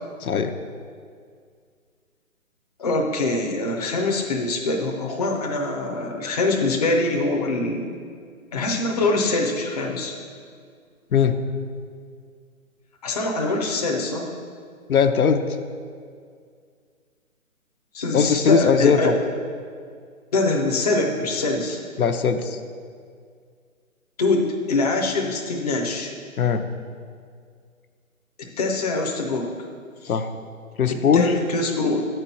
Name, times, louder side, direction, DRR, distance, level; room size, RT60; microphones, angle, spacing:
voice 1, 0.2-0.5 11.1-11.3 14.9-15.4 18.1-19.1 22.0-22.6 26.4-26.6 30.1-30.3 30.8-31.3, left 6 dB, 85° left, 7 dB, 0.7 m, -19 dB
voice 2, 2.8-7.9 8.5-10.1 13.0-14.3 17.9-19.2 20.3-21.8 24.2-26.1 28.4-29.5 30.0-30.1 31.1-32.1, left 2 dB, 30° left, 0 dB, 0.6 m, -24 dB
7.9 x 4.5 x 6.7 m, 2.1 s
hypercardioid pair, 155°, 42 cm